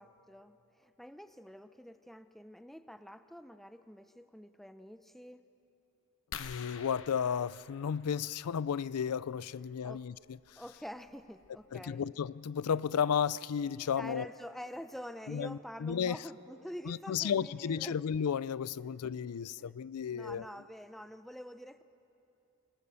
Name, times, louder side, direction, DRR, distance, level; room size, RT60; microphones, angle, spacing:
voice 1, 0.0-5.5 9.8-10.0 10.6-12.0 13.8-18.0 18.8-19.0 19.6-19.8 20.0-21.8, equal, ahead, 0.5 m, -47 dB
sound 1, 6.3-8.7 10.3-10.5 11.1-11.2 11.4-11.7, left 7 dB, 60° left, 1.0 m, -48 dB
voice 2, 6.4-10.1 10.5-10.6 11.7-14.3 15.3-16.2 16.9-20.4, left 7 dB, 90° left, 0.4 m, -33 dB
27.5 x 19.5 x 7.0 m
head